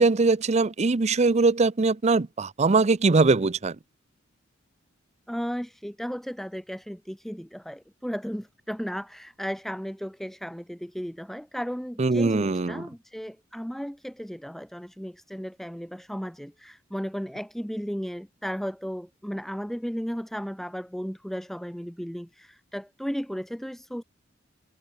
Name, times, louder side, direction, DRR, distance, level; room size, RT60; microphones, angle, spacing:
voice 1, 0.0-3.8 12.0-12.8, right 3 dB, 35° right, 0.6 m, -21 dB
voice 2, 5.3-24.0, equal, ahead, 2.3 m, -35 dB
head